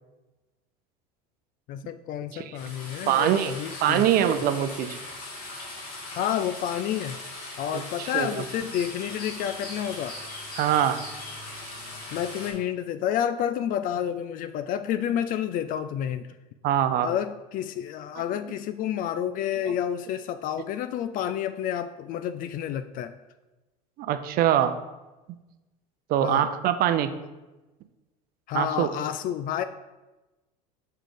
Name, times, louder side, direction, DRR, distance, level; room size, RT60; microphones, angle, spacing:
voice 1, 1.7-4.0 6.2-7.2 7.6-10.2 12.1-16.3 17.0-23.1 26.2-26.5 28.5-29.6, left 10 dB, 50° left, 11 dB, 0.4 m, -29 dB
sound 1, 2.5-12.5, left 2 dB, 80° left, 2.1 m, -39 dB
voice 2, 3.1-3.5 3.8-5.0 7.7-8.3 10.6-11.0 16.6-17.1 24.0-24.7 26.1-27.1 28.5-28.9, right 10 dB, 50° right, 10 dB, 0.6 m, -23 dB
6.6 x 4.0 x 4.9 m, 1.1 s
supercardioid pair, 95°, 19 cm